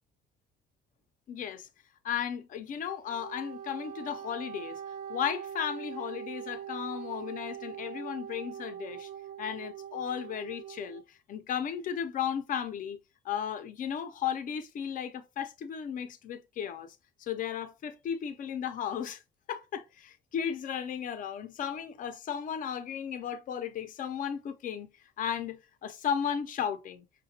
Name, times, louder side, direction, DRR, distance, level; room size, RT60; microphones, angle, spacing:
voice 1, 1.3-1.7 2.0-4.8 5.1-9.1 9.4-13.0 13.2-19.2 19.5-24.9 25.2-27.1, left 8 dB, 50° left, 0.6 m, -35 dB
Wind instrument woodwind instrument, 3.0-11.0, right 9 dB, 60° right, 0.4 m, -42 dB
5.6 x 2.2 x 2.7 m
cardioid pair, 110°, 17 cm